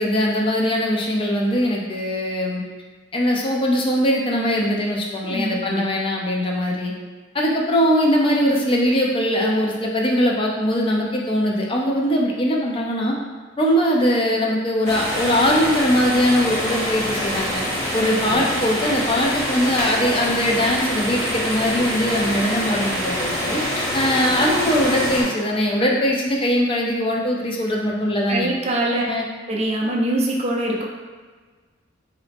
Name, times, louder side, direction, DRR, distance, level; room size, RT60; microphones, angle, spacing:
voice 1, 0.0-2.6 3.1-6.9 7.3-13.1 13.6-17.6 17.9-28.5 29.1-29.2, equal, 30° left, -1 dB, 0.5 m, -21 dB
voice 2, 5.2-5.8 18.0-18.4 28.3-29.0 29.5-30.9, right 1 dB, 35° right, -1 dB, 0.4 m, -24 dB
sound 1, 14.8-25.2, equal, 15° left, 1.0 m, -25 dB
3.8 x 2.6 x 3.4 m, 1.4 s
head